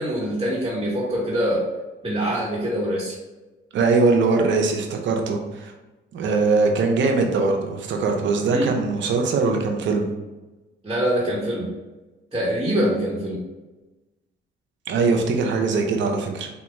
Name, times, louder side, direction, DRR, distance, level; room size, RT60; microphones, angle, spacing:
voice 1, 0.0-1.7 2.0-3.2 8.5-8.7 10.8-11.7 12.3-13.4, equal, 20° right, -5 dB, 1.2 m, -24 dB
voice 2, 3.7-5.7 6.1-10.1 14.9-16.5, right 4 dB, 70° right, 3 dB, 0.7 m, -21 dB
4.4 x 2.3 x 3.0 m, 1.1 s
cardioid pair, 90°, 20 cm